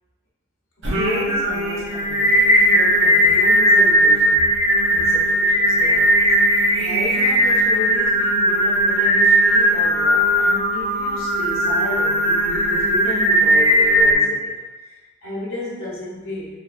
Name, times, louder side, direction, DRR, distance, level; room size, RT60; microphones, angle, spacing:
Singing, 0.8-14.1, equal, 65° right, 0.5 m, -17 dB
voice 1, 0.9-6.3 6.7-14.6 14.9-16.6, left 2 dB, 80° left, -6 dB, 0.8 m, -32 dB
3.2 x 2.2 x 2.3 m, 1.2 s
head